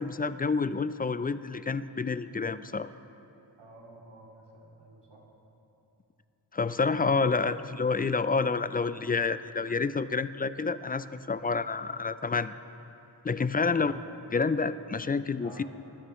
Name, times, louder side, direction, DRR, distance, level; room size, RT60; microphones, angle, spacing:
voice 1, 0.0-2.9 6.5-12.6 13.2-13.9 14.3-15.6, left 4 dB, 20° left, 14 dB, 0.3 m, -28 dB
voice 2, 3.6-5.3 13.5-13.9 15.4-15.6, right 2 dB, 70° right, -2 dB, 2.5 m, -51 dB
20.5 x 12.5 x 3.1 m, 2.9 s
cardioid pair, 55°, 43 cm